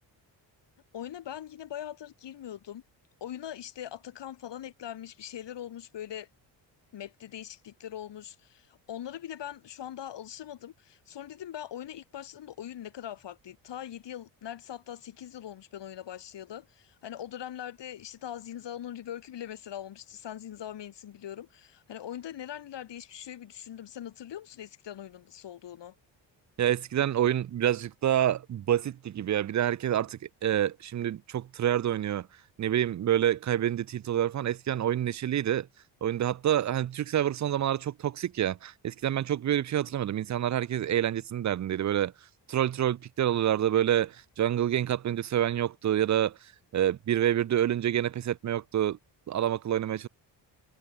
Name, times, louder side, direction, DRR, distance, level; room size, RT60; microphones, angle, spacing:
voice 1, 0.9-2.8 3.2-6.3 6.9-25.9, left 10 dB, 70° left, 4.7 m, -41 dB
voice 2, 26.6-32.3 32.6-35.7 36.0-42.1 42.5-46.4 46.7-49.0 49.3-50.1, right 11 dB, 40° right, 0.6 m, -27 dB
cardioid pair, 85°, 44 cm